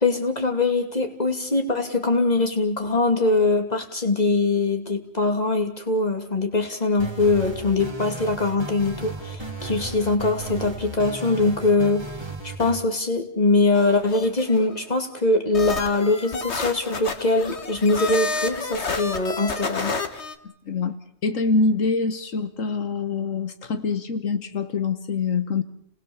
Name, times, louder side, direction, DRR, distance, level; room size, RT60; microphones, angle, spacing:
voice 1, 0.0-12.1 12.4-19.9, left 3 dB, 30° left, 5 dB, 2.8 m, -22 dB
sound 1, 6.9-12.8, right 3 dB, 20° right, 2.3 m, -35 dB
sound 2, 13.7-14.8 15.5-20.4, left 3 dB, 55° left, 1.9 m, -30 dB
voice 2, 20.6-21.0 21.2-25.6, left 4 dB, 80° left, 10 dB, 1.6 m, -25 dB
30.0 x 20.0 x 7.2 m, 0.70 s
omnidirectional pair, 1.3 m